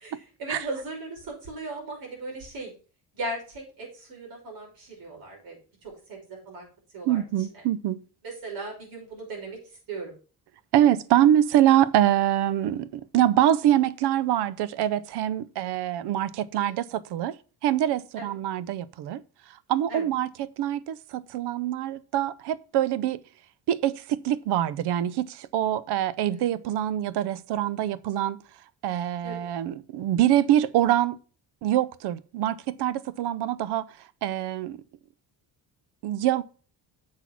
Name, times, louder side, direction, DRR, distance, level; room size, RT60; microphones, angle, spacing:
voice 1, 0.4-2.7 3.1-5.6 5.8-6.7 6.9-7.2 7.5-7.6 8.2-9.6 9.9-10.1 16.7-16.8 18.2-18.3 19.9-20.1 26.3-26.4 29.2-29.5, right 2 dB, 65° right, 5.9 m, -37 dB
voice 2, 7.1-8.0 10.7-17.4 17.6-19.2 19.7-23.2 23.7-28.4 28.8-31.2 31.6-33.9 34.2-34.8 36.0-36.4, right 12 dB, 85° right, 0.7 m, -24 dB
7.6 x 6.2 x 5.9 m
cardioid pair, 155°, 39 cm